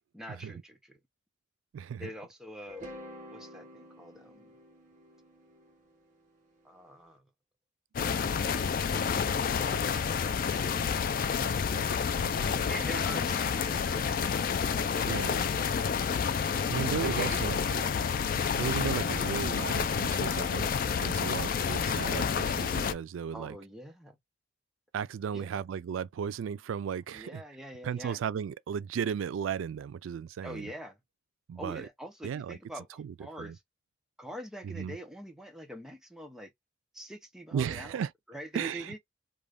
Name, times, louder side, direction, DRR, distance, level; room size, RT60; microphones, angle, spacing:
voice 1, 0.1-1.0 2.0-2.9 3.3-4.5 6.6-7.3 8.8-8.9 12.6-15.5 16.5-16.7 17.0-17.5 18.8-19.0 23.3-24.2 25.3-25.6 27.1-28.2 30.4-31.0 31.6-33.6 34.2-36.5 36.9-39.0, equal, 5° right, 0.6 m, -44 dB
voice 2, 1.7-2.1 15.1-15.5 16.7-17.8 18.5-20.7 21.0-23.6 24.9-27.4 27.8-30.7 31.5-31.9 32.2-32.6 33.0-33.5 34.6-34.9 37.5-38.1 38.5-39.0, right 7 dB, 85° right, 0.3 m, -35 dB
sound 1, 2.7-6.8, equal, 40° right, 1.0 m, -49 dB
sound 2, 7.9-22.9, left 6 dB, 45° left, 0.3 m, -29 dB
2.5 x 2.3 x 3.3 m
head